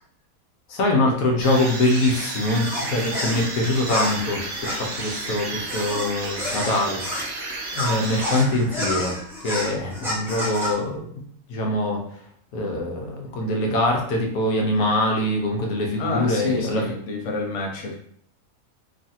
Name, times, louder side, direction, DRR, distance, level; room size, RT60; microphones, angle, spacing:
voice 1, 0.7-7.0 7.7-12.0 12.5-16.9, left 1 dB, 85° left, 1 dB, 1.2 m, -23 dB
sound 1, 1.4-8.9, right 2 dB, 65° right, 1.0 m, -32 dB
sound 2, 2.5-7.3 7.7-10.7, left 1 dB, 5° right, 0.4 m, -30 dB
voice 2, 16.0-18.0, left 2 dB, 65° left, 1 dB, 0.9 m, -28 dB
3.1 x 2.4 x 2.7 m, 0.64 s
omnidirectional pair, 1.5 m